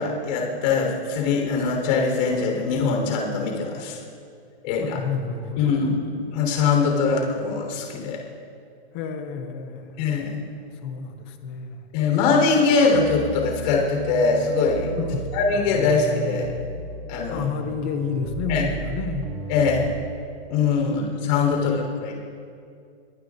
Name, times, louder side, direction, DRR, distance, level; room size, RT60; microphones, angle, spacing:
voice 1, 0.0-4.0 4.6-5.0 5.6-8.2 10.0-10.4 11.9-14.9 15.3-16.5 17.1-17.5 18.5-18.6 19.5-19.8 20.5-22.1, left 4 dB, 40° left, 0 dB, 4.0 m, -22 dB
voice 2, 4.8-5.6 8.9-10.3 10.8-11.8 15.0-15.3 17.3-19.3 19.6-20.0 20.8-21.1 21.5-21.7, left 5 dB, 10° left, 7 dB, 0.3 m, -30 dB
sound 1, 12.9-20.1, right 2 dB, 55° right, 2.3 m, -34 dB
23.0 x 19.0 x 2.6 m, 2.3 s
hypercardioid pair, 155°, 34 cm